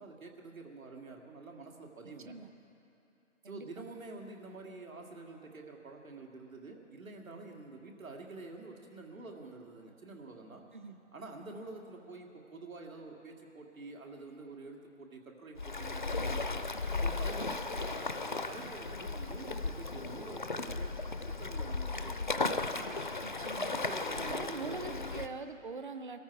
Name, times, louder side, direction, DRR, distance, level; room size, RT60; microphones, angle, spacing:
voice 1, 0.0-2.4 3.4-10.7 11.1-16.6 17.0-20.9 21.3-22.7 23.7-25.1, right 3 dB, 85° right, 1 dB, 2.4 m, -48 dB
voice 2, 3.4-3.8 10.7-11.0 23.2-23.8 24.2-26.2, right 4 dB, 40° right, 9 dB, 0.7 m, -43 dB
Waves surf, 15.6-25.3, left 3 dB, 40° left, 0.4 m, -36 dB
21.5 x 14.0 x 4.7 m, 2.8 s
hypercardioid pair, 165°, 40 cm